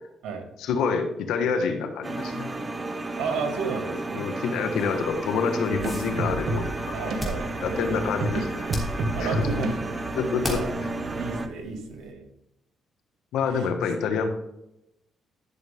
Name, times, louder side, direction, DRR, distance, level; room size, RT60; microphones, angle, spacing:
voice 1, 0.6-2.5 4.2-7.1 7.6-8.6 9.2-9.4 10.1-10.6 13.3-14.3, left 5 dB, 85° left, 6 dB, 1.4 m, -27 dB
sound 1, 2.0-11.5, right 2 dB, 20° right, 0.9 m, -33 dB
voice 2, 3.2-4.3 6.9-8.1 9.1-9.9 10.4-10.8 11.1-12.2 13.4-13.7, right 4 dB, 80° right, 4 dB, 2.2 m, -33 dB
sound 2, 4.8-12.1, left 1 dB, 5° left, 3.2 m, -39 dB
sound 3, 5.7-11.4, right 2 dB, 65° right, 1.2 m, -32 dB
12.0 x 6.6 x 3.6 m, 0.86 s
cardioid pair, 90°, 0 cm